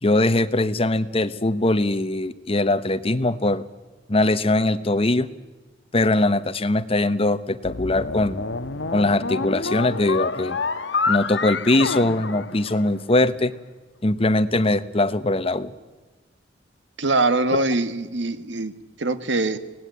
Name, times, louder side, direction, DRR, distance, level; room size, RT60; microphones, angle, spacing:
voice 1, 0.0-3.6 4.1-5.3 5.9-8.5 8.9-10.6 11.1-13.5 14.0-15.7, left 2 dB, 30° left, 13 dB, 1.0 m, -21 dB
sound 1, 7.6-13.1, left 4 dB, 70° left, 1.2 m, -28 dB
voice 2, 17.0-19.6, right 2 dB, 75° right, 11 dB, 1.7 m, -23 dB
25.0 x 18.5 x 9.4 m, 1.3 s
head